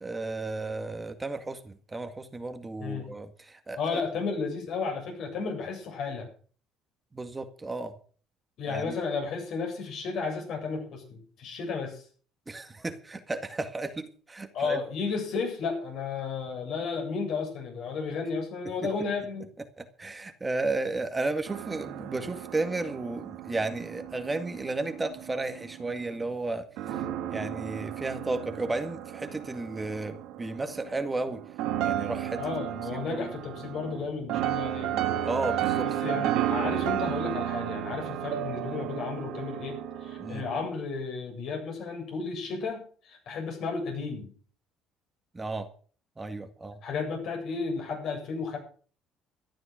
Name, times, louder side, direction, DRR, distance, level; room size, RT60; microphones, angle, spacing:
voice 1, 0.0-4.0 7.1-8.0 8.7-9.0 12.5-14.8 18.6-18.9 19.8-27.0 27.3-31.4 31.8-32.4 32.9-33.3 35.2-35.9 40.2-40.5 45.3-45.7 46.2-46.8, right 2 dB, 20° right, 7 dB, 1.9 m, -33 dB
voice 2, 3.8-6.3 8.6-12.1 14.5-19.5 26.9-27.1 32.4-34.9 36.0-44.3 46.8-48.6, left 4 dB, 65° left, 2 dB, 7.9 m, -33 dB
sound 1, 21.5-26.2 26.8-40.7, right 11 dB, 75° right, 1.8 m, -33 dB
13.5 x 11.0 x 6.4 m, 0.43 s
supercardioid pair, 70°, 0 cm